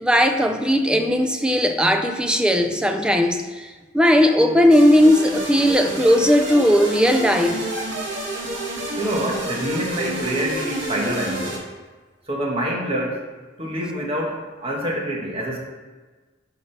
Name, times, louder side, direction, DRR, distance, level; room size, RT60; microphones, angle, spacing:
voice 1, 0.0-7.7, equal, 5° right, 5 dB, 0.6 m, -17 dB
sound 1, 4.7-11.6, right 1 dB, 85° right, 2.2 m, -29 dB
voice 2, 9.0-11.6 12.3-13.2 13.6-15.7, equal, 30° right, -2 dB, 1.5 m, -26 dB
11.5 x 6.4 x 3.4 m, 1.3 s
head